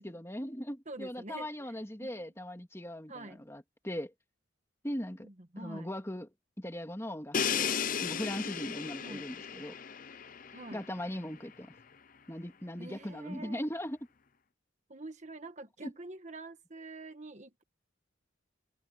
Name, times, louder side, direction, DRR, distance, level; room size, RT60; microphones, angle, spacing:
voice 1, 0.0-4.1 4.8-5.3 5.6-7.7 8.0-9.8 10.7-11.7 12.3-14.0 15.8-15.9, equal, 15° left, 2.7 m, -39 dB
voice 2, 0.9-1.7 2.0-2.3 3.1-3.4 5.2-5.9 9.0-9.3 10.5-10.8 12.8-13.7 14.9-17.6, right 2 dB, 40° right, 1.5 m, -46 dB
Crash cymbal, 7.3-11.2, left 7 dB, 45° left, 0.7 m, -35 dB
head